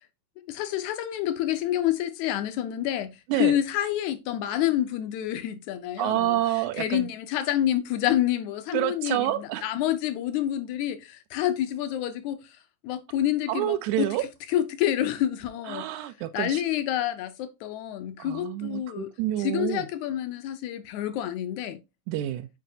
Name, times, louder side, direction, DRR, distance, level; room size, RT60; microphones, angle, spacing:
voice 1, 0.5-6.4 6.8-12.4 12.8-14.1 14.5-15.9 16.3-19.1 19.4-21.8, left 12 dB, 75° left, 1.8 m, -28 dB
voice 2, 6.0-7.1 8.7-9.6 13.5-14.2 15.7-16.6 18.2-19.9 22.1-22.5, right 14 dB, 80° right, 1.8 m, -28 dB
7.5 x 4.9 x 2.7 m
omnidirectional pair, 3.7 m